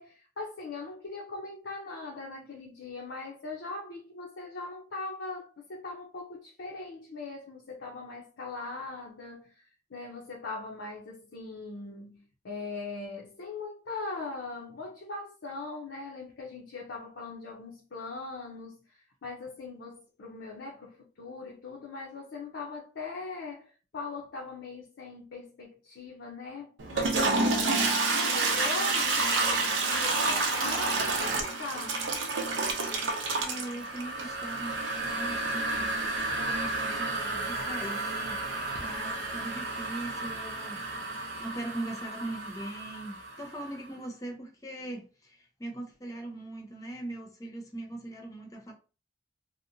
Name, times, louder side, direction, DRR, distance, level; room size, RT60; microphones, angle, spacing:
voice 1, 0.0-9.6 9.9-28.0 28.2-32.1, left 3 dB, 70° left, 0.6 m, -40 dB
Toilet flush, 26.8-43.5, right 3 dB, 80° right, 0.6 m, -30 dB
voice 2, 33.2-35.7 36.5-38.4 38.8-40.8 41.4-48.7, right 1 dB, 20° left, 0.6 m, -40 dB
2.7 x 2.1 x 2.6 m
head